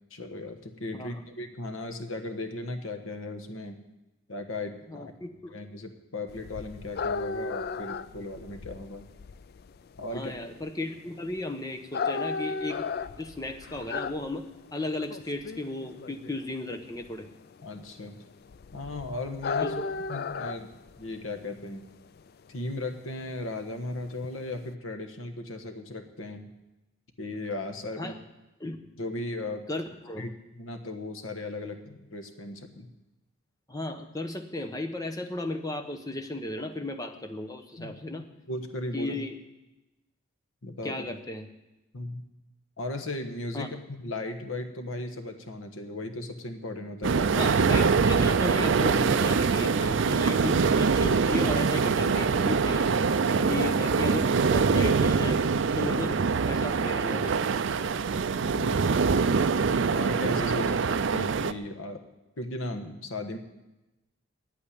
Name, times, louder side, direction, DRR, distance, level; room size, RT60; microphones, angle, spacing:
voice 1, 0.1-3.8 4.3-5.1 5.5-9.1 10.0-10.3 17.6-18.2 18.7-19.8 20.1-20.7 21.0-21.9 22.5-26.5 27.2-28.2 29.0-29.7 30.2-30.3 30.5-32.9 37.8-39.2 40.6-41.0 41.9-42.2 42.8-47.5 53.4-53.7 55.8-56.0 58.4-59.1 59.9-62.0 62.4-63.4, left 2 dB, 70° left, 6 dB, 1.3 m, -37 dB
voice 2, 4.9-5.5 10.1-12.9 13.2-17.3 19.6-19.8 28.0-28.1 28.6-28.9 29.7-30.3 33.7-38.2 38.9-39.3 40.8-41.5 43.5-43.7 47.4-52.9 53.5-54.3 54.5-55.4 55.8-57.3 60.6-60.8, left 2 dB, 15° left, 6 dB, 0.9 m, -35 dB
sound 1, 6.3-24.7, left 4 dB, 45° left, 0.3 m, -36 dB
sound 2, 47.0-61.5, right 5 dB, 60° right, 0.4 m, -24 dB
9.7 x 8.8 x 9.9 m, 1.0 s
head